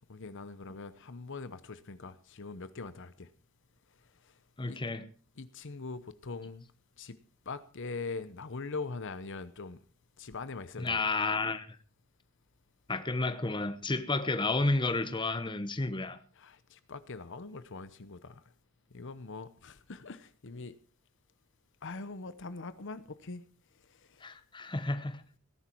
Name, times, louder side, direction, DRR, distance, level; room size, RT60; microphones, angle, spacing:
voice 1, 0.1-3.3 4.7-4.8 5.4-6.6 7.0-7.1 7.5-9.8 10.2-11.0 16.4-18.3 18.9-20.7 21.8-23.4, left 3 dB, 60° left, 0.9 m, -42 dB
voice 2, 4.6-5.1 10.8-11.7 12.9-16.2 24.2-25.2, left 2 dB, 20° left, 1.0 m, -31 dB
18.0 x 11.0 x 4.6 m
head